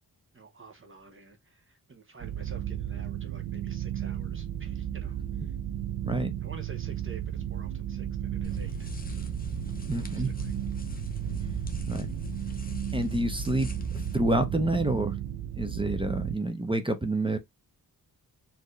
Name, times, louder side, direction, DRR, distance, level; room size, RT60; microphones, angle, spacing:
voice 1, 0.3-5.5 6.4-9.4 9.9-10.5, right 3 dB, 30° right, 1.0 m, -50 dB
sound 1, 2.2-16.4, right 11 dB, 85° right, 0.6 m, -34 dB
sound 2, 8.4-14.2, left 3 dB, 20° left, 0.8 m, -40 dB
voice 2, 9.9-10.3 11.9-12.1 12.9-13.7 14.1-15.2 15.6-17.4, right 1 dB, 15° right, 0.7 m, -28 dB
4.5 x 2.9 x 3.2 m
wide cardioid pair, 115°, 39 cm